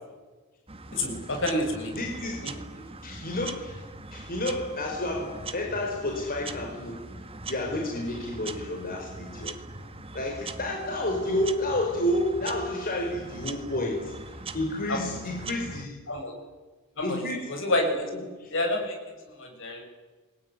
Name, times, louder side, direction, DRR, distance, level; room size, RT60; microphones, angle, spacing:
sound 1, 0.7-15.9, right 3 dB, 25° right, 1.8 m, -41 dB
voice 1, 0.9-2.1 2.4-2.8 14.9-15.2 16.1-16.4 17.0-17.2 17.5-18.1 18.5-19.0 19.3-19.8, left 1 dB, 65° left, 4 dB, 7.5 m, -29 dB
voice 2, 1.9-2.5 3.0-3.8 4.1-7.0 7.5-9.6 10.1-16.2 17.0-17.5 18.4-18.5, left 1 dB, 45° left, 1 dB, 4.9 m, -30 dB
28.0 x 21.0 x 9.9 m, 1.3 s
head